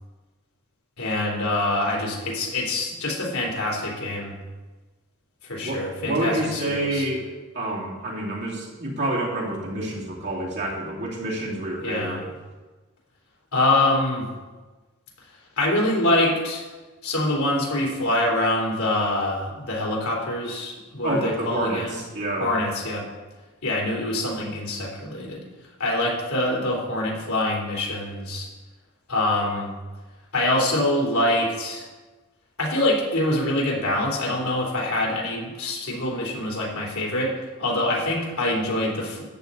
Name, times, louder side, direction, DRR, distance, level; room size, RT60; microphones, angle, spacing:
voice 1, 1.0-4.4 5.4-7.0 11.8-12.2 13.5-14.3 15.6-16.6 17.0-22.0 22.4-23.1 23.6-25.4 25.8-28.5 29.1-29.7 30.3-31.8 32.6-37.3 37.6-39.3, left 1 dB, 75° left, -3 dB, 3.5 m, -25 dB
voice 2, 5.6-12.3 21.0-22.6, right 1 dB, 50° right, -4 dB, 2.9 m, -28 dB
13.5 x 9.2 x 4.1 m, 1.2 s
head